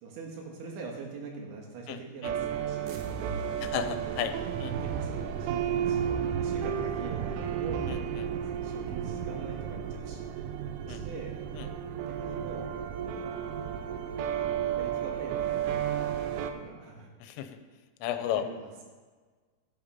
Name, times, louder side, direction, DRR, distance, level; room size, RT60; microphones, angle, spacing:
voice 1, 0.0-4.0 4.8-7.9 8.3-10.3 10.9-11.3 12.1-12.7 13.0-13.4 14.8-16.2 16.5-17.1 18.3-18.9, right 4 dB, 70° right, 0 dB, 4.0 m, -43 dB
voice 2, 1.9-2.3 3.6-4.3 4.6-4.7 7.9-8.0 10.9-11.0 11.6-11.7 17.2-17.5 18.0-18.4, left 11 dB, 90° left, 8 dB, 3.2 m, -33 dB
sound 1, 2.2-16.5, right 9 dB, 85° right, 3.1 m, -32 dB
13.0 x 8.9 x 5.7 m, 1.4 s
omnidirectional pair, 5.7 m